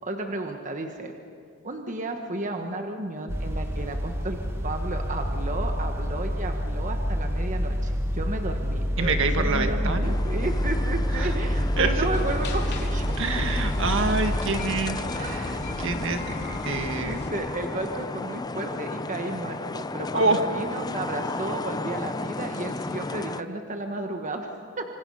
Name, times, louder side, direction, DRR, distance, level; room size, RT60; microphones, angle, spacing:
voice 1, 0.0-1.1 1.6-13.0 15.0-15.8 17.0-24.8, right 2 dB, 35° right, 4 dB, 1.3 m, -33 dB
sound 1, 3.3-14.4, equal, 10° right, 1.7 m, -27 dB
voice 2, 9.0-10.1 11.1-11.4 11.8-12.1 13.2-17.1 20.1-20.4, right 3 dB, 60° right, 6 dB, 1.8 m, -27 dB
sound 2, 10.0-23.4, left 3 dB, 20° left, 0.5 m, -34 dB
sound 3, 12.1-17.3, left 1 dB, 50° left, 2.7 m, -36 dB
26.0 x 26.0 x 5.6 m, 2.3 s
head